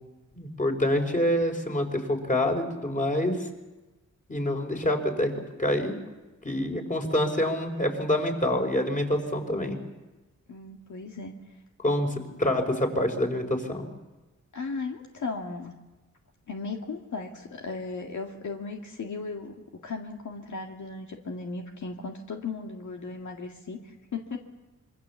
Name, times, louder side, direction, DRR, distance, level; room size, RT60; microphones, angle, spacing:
voice 1, 0.3-3.4 4.3-5.3 5.6-6.0 6.4-9.8 11.8-13.9, left 1 dB, 25° left, 4 dB, 4.7 m, -26 dB
voice 2, 10.5-11.3 14.5-15.7 16.5-24.4, left 4 dB, 70° left, 2 dB, 2.1 m, -36 dB
26.0 x 23.5 x 7.2 m, 1.1 s
cardioid pair, 90°, 31 cm